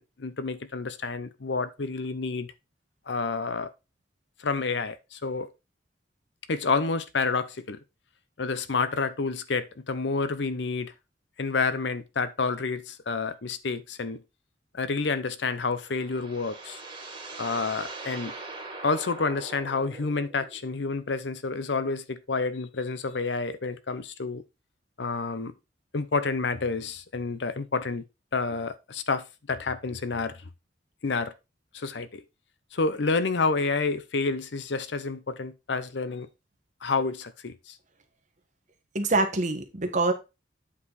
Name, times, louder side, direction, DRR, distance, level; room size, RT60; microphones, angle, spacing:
voice 1, 0.0-2.5 3.1-3.7 4.4-5.5 6.5-7.8 8.4-10.9 11.4-14.2 14.7-16.8 17.4-18.3 18.8-24.4 25.0-25.5 25.9-28.0 28.3-30.5 31.0-31.3 31.7-32.2 32.7-36.3 36.8-37.8, left 4 dB, 70° left, 0.7 m, -29 dB
sound 1, 15.6-20.7, right 3 dB, 25° right, 2.3 m, -42 dB
voice 2, 38.9-40.1, right 3 dB, 45° right, 1.4 m, -25 dB
8.5 x 4.9 x 4.0 m
head